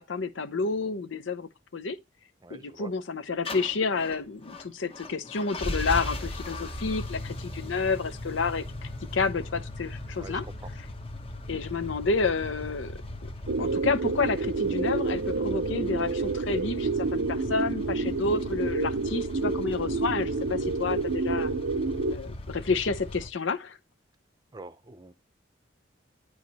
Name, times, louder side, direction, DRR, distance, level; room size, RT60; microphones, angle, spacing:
voice 1, 0.0-2.0 2.5-10.4 11.5-13.3 13.6-21.5 22.1-23.8, left 4 dB, 80° left, 0.7 m, -30 dB
voice 2, 2.4-2.9 10.2-10.7 24.5-25.1, right 3 dB, 20° right, 0.6 m, -45 dB
sound 1, 3.5-23.3, left 1 dB, 30° left, 0.9 m, -38 dB
sound 2, 13.5-22.2, right 3 dB, 80° right, 0.6 m, -29 dB
9.5 x 4.8 x 4.0 m
head